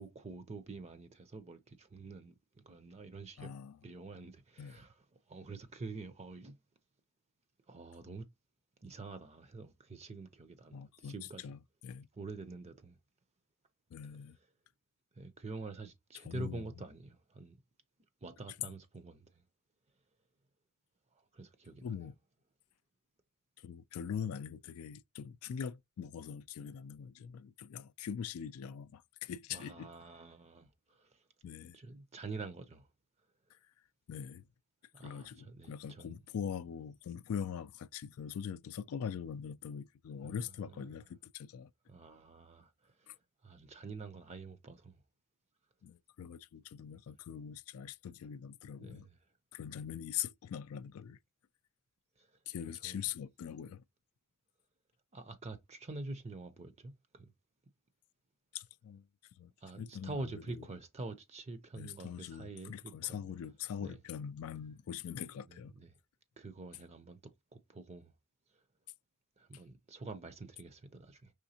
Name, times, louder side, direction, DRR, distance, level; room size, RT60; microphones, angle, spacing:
voice 1, 0.0-2.4 2.6-3.5 3.8-6.6 7.7-8.3 8.8-11.5 12.1-13.0 15.2-17.6 18.2-19.3 21.3-21.9 29.5-31.2 31.7-32.9 34.9-36.1 40.2-41.0 41.9-43.1 43.4-44.9 48.8-49.2 52.2-52.3 52.8-53.0 55.1-57.3 59.6-63.2 63.8-64.0 65.4-65.9 66.4-67.2 67.5-68.1 69.4-71.3, right 3 dB, 30° right, 0.5 m, -47 dB
voice 2, 3.4-3.8 4.6-4.8 10.7-11.2 11.4-12.1 13.9-14.4 16.3-16.6 21.8-22.1 23.6-29.9 31.4-31.8 34.1-34.4 35.0-41.7 43.1-43.2 45.8-49.1 49.5-51.2 52.5-53.8 58.5-59.0 59.4-59.5 59.8-60.6 61.8-65.7, left 8 dB, 75° left, 0.3 m, -42 dB
5.0 x 3.5 x 2.8 m
head